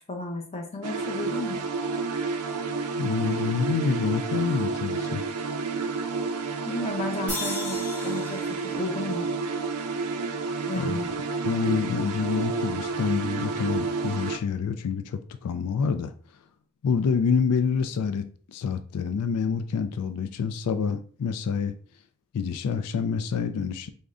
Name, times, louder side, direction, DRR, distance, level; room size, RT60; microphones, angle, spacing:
voice 1, 0.0-1.7 6.6-9.3 10.6-11.1, left 2 dB, 30° left, 0.7 m, -33 dB
sound 1, 0.8-14.4, right 4 dB, 85° right, 0.5 m, -30 dB
voice 2, 2.9-5.3 10.8-11.0 11.4-16.1 16.8-18.3 18.5-21.7 22.3-23.9, left 6 dB, 90° left, 0.4 m, -27 dB
sound 2, 7.3-10.6, left 2 dB, 10° left, 1.7 m, -38 dB
3.7 x 2.1 x 3.6 m
head